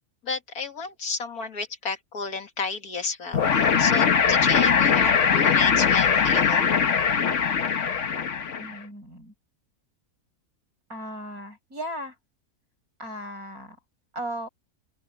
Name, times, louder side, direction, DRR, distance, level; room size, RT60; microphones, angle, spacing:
voice 1, 0.2-6.7, left 4 dB, 70° left, 2.5 m, -32 dB
sound 1, 3.3-8.8, left 6 dB, 55° left, 1.5 m, -21 dB
voice 2, 8.6-9.3 10.9-12.2 13.0-13.8 14.1-14.5, equal, 65° right, 6.0 m, -36 dB
open air
omnidirectional pair, 1.6 m